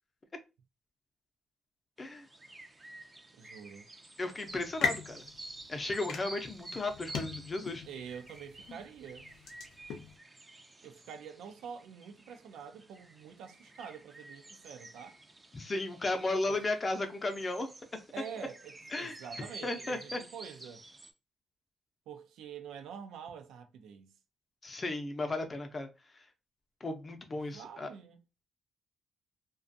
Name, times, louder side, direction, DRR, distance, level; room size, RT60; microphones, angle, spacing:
sound 1, 2.0-21.1, right 2 dB, 20° right, 0.4 m, -50 dB
voice 1, 3.3-3.9 7.9-9.3 10.8-15.2 16.5-16.6 18.1-20.9 22.1-24.1 27.5-28.2, right 7 dB, 85° right, 0.4 m, -46 dB
voice 2, 4.2-5.2 5.7-7.8 15.5-17.7 18.9-19.1 19.6-20.2 24.6-25.9 26.8-27.9, left 2 dB, 30° left, 0.5 m, -35 dB
sound 2, 4.5-10.1, left 6 dB, 80° left, 0.5 m, -40 dB
2.4 x 2.3 x 2.6 m
cardioid pair, 90°, 0 cm